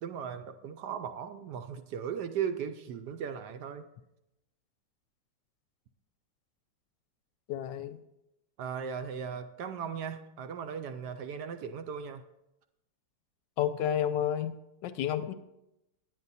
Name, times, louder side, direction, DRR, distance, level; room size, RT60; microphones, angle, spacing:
voice 1, 0.0-3.9 8.6-12.2, right 7 dB, 75° right, 8 dB, 1.1 m, -37 dB
voice 2, 7.5-8.0 13.6-14.6 14.8-15.3, left 10 dB, 75° left, 12 dB, 1.1 m, -30 dB
9.5 x 9.3 x 4.1 m, 0.88 s
omnidirectional pair, 2.1 m